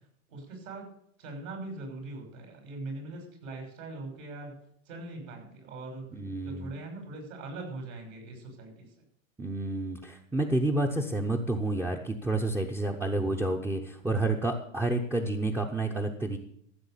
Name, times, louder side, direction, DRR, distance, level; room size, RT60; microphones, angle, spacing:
voice 1, 0.3-0.9 1.2-4.5 4.9-6.1 6.4-9.0, right 2 dB, 75° right, 3 dB, 6.3 m, -41 dB
voice 2, 6.1-6.7 9.4-16.4, right 2 dB, 5° right, 3 dB, 0.7 m, -29 dB
14.5 x 6.6 x 8.2 m, 0.68 s
hypercardioid pair, 135°, 40 cm